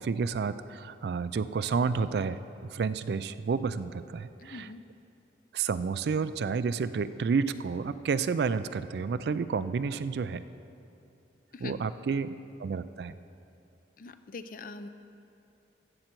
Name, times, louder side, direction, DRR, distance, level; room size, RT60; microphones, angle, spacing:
voice 1, 0.0-2.4 2.7-4.7 5.5-10.4 11.6-12.3 12.6-13.1, right 5 dB, 60° right, 14 dB, 0.3 m, -30 dB
voice 2, 4.4-4.8 11.5-11.7 14.0-14.9, left 3 dB, 50° left, 11 dB, 0.4 m, -42 dB
14.0 x 7.6 x 4.5 m, 2.7 s
head